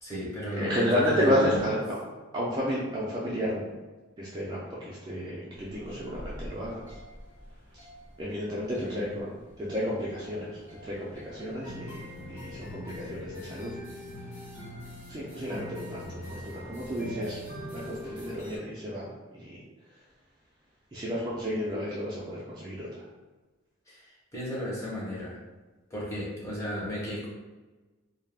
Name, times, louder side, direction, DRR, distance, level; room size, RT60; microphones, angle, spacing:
voice 1, 0.0-1.7 8.8-9.2 23.9-25.4 25.9-27.3, equal, 15° left, -6 dB, 0.7 m, -34 dB
voice 2, 0.6-2.0 2.3-3.7 4.2-6.9 8.2-9.3 9.6-10.5 10.8-12.0 12.3-13.7 15.1-17.4 17.7-19.1 19.3-19.6 20.9-22.9, equal, 20° right, -7 dB, 0.4 m, -31 dB
sound 1, 5.5-18.6, left 1 dB, 30° left, 1.0 m, -43 dB
2.3 x 2.1 x 3.3 m, 1.2 s
head